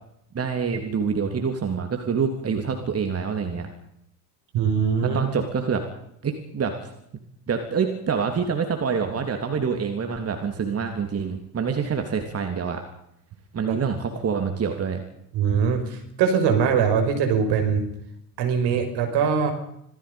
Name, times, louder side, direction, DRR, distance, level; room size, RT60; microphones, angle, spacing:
voice 1, 0.3-3.7 5.1-5.8 6.2-6.9 7.5-12.8 13.5-15.0, right 6 dB, 30° right, 5 dB, 3.3 m, -26 dB
voice 2, 4.5-5.2 13.7-13.8 15.3-17.9 18.4-19.5, right 6 dB, 55° right, 5 dB, 5.7 m, -22 dB
27.0 x 18.5 x 5.4 m, 0.77 s
hypercardioid pair, 70°, 48 cm